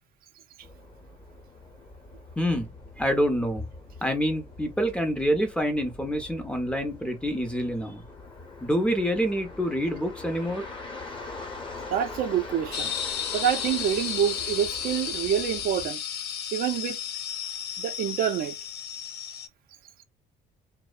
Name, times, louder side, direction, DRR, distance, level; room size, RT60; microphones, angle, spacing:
sound 1, 0.6-15.9, left 3 dB, 30° left, 0.9 m, -43 dB
voice 1, 2.4-2.7 3.0-3.7 4.0-8.0 8.6-10.6, equal, 5° left, 0.6 m, -27 dB
voice 2, 11.9-12.9 13.3-16.0 16.5-17.0 17.8-18.6, right 9 dB, 60° right, 0.5 m, -27 dB
sound 2, 12.7-19.5, left 8 dB, 80° left, 0.6 m, -33 dB
2.6 x 2.0 x 2.3 m
cardioid pair, 110°, 17 cm